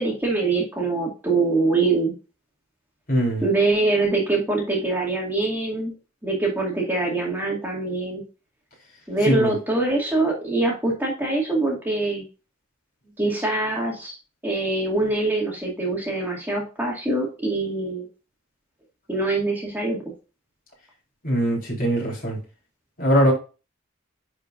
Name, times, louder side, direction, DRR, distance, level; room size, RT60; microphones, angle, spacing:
voice 1, 0.0-2.1 3.4-5.9 6.2-8.2 9.1-12.2 13.2-14.2 14.4-18.1 19.1-20.0, right 2 dB, 10° right, 2.0 m, -24 dB
voice 2, 3.1-3.4 9.3-9.5 21.2-22.4 23.0-23.3, equal, 45° left, 3.8 m, -21 dB
10.5 x 4.7 x 2.5 m
head